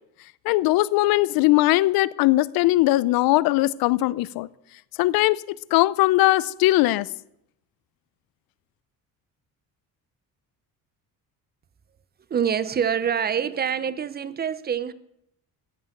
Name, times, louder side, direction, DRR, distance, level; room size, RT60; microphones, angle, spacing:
voice 1, 0.5-4.5 5.0-5.4 5.7-7.1, left 18 dB, 80° left, 0.6 m, -20 dB
voice 2, 12.3-14.9, right 8 dB, 25° right, 0.6 m, -25 dB
15.0 x 9.5 x 6.6 m
cardioid pair, 130°, 35 cm